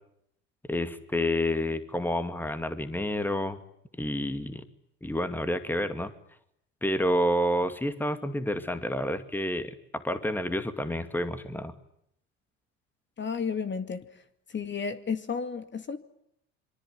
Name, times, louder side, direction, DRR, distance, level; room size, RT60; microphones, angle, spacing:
voice 1, 0.7-3.6 4.0-4.6 5.0-6.1 6.8-11.7, left 1 dB, 5° left, 2.3 m, -29 dB
voice 2, 13.2-14.1 14.5-16.0, left 6 dB, 30° left, 2.4 m, -32 dB
26.0 x 24.0 x 9.5 m
hypercardioid pair, 80°, 37 cm